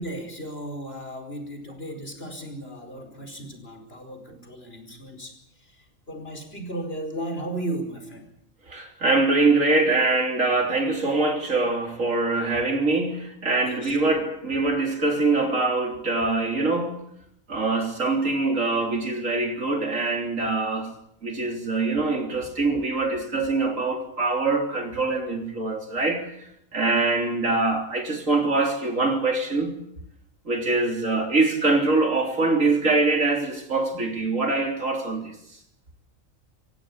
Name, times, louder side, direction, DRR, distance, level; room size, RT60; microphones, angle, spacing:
voice 1, 0.0-8.3 13.6-14.0, right 1 dB, 50° left, 5.3 m, -35 dB
voice 2, 8.7-17.0 17.5-20.9 21.2-26.3 26.7-29.8 30.5-35.3, right 3 dB, 75° right, 4.0 m, -24 dB
27.0 x 16.0 x 8.8 m
omnidirectional pair, 1.4 m